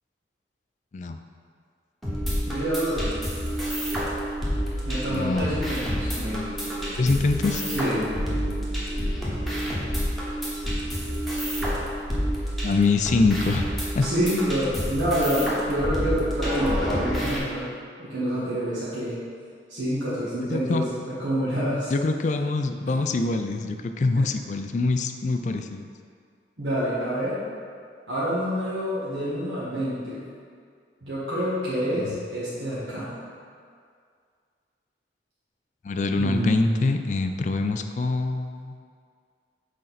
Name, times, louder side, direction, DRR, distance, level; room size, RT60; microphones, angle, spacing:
sound 1, 2.0-17.4, equal, ahead, 1.1 m, -28 dB
voice 1, 2.4-3.1 4.9-6.4 7.7-8.1 14.0-17.7 18.0-19.2 19.7-21.9 22.9-23.2 26.6-27.5 28.1-30.2 31.0-33.1 36.1-37.0, equal, 90° right, -11 dB, 1.5 m, -27 dB
voice 2, 5.1-5.7 7.0-7.6 12.6-14.1 20.5-20.8 21.9-25.8 32.0-32.1 35.8-38.7, left 3 dB, 40° left, 7 dB, 0.3 m, -24 dB
6.5 x 4.3 x 4.0 m, 2.2 s
head